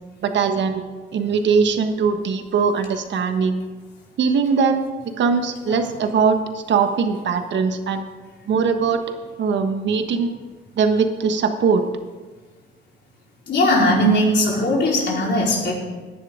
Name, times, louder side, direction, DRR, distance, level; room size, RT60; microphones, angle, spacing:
voice 1, 0.2-0.8 1.1-3.6 4.2-4.8 5.2-8.1 8.5-9.0 9.4-10.4 10.8-11.9, right 5 dB, 65° right, 7 dB, 1.3 m, -20 dB
voice 2, 13.5-15.8, equal, 60° left, -3 dB, 4.4 m, -19 dB
17.5 x 10.5 x 3.8 m, 1.4 s
cardioid pair, 90°, 20 cm